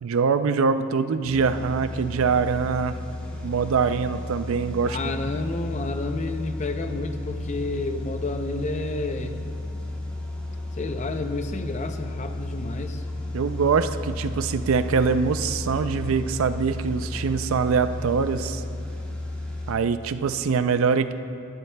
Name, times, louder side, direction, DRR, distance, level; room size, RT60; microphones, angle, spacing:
voice 1, 0.0-3.0 3.4-5.0 13.3-18.6 19.7-21.1, right 5 dB, 70° right, 11 dB, 0.4 m, -23 dB
sound 1, 1.2-19.7, left 2 dB, 5° left, 1.6 m, -33 dB
voice 2, 4.8-9.4 10.8-13.0, left 2 dB, 35° left, 7 dB, 0.5 m, -30 dB
17.0 x 12.0 x 2.2 m, 2.6 s
head